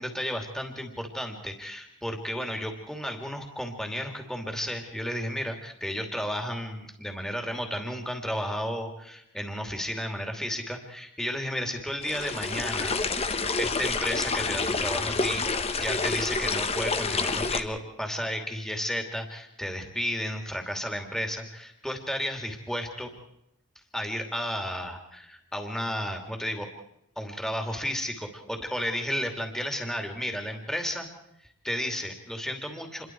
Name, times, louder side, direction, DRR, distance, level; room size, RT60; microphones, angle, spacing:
voice 1, 0.0-15.4 15.8-23.1 23.9-26.7 27.2-31.1 31.4-33.1, equal, ahead, 4 dB, 2.8 m, -33 dB
sound 1, 12.0-17.6, left 4 dB, 30° left, 1.2 m, -28 dB
28.0 x 22.5 x 4.7 m, 0.82 s
head